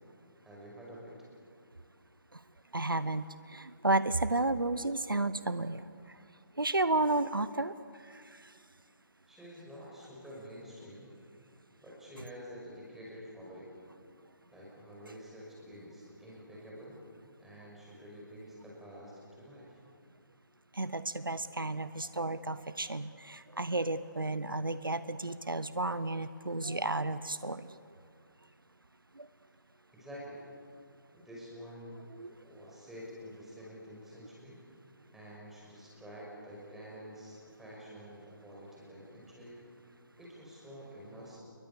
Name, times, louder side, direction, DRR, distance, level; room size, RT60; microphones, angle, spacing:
voice 1, 0.4-1.2 9.3-11.1 11.8-13.7 14.5-17.0 17.4-19.8 29.9-30.4 31.1-32.1 32.4-34.6 35.1-39.6 40.2-41.4, equal, 5° right, -5 dB, 5.8 m, -48 dB
voice 2, 2.7-5.8 6.6-7.7 20.8-27.6 29.2-29.3 32.2-32.3, right 2 dB, 80° right, 14 dB, 0.9 m, -32 dB
29.0 x 22.0 x 6.9 m, 2.3 s
figure-of-eight pair, 145°, 11 cm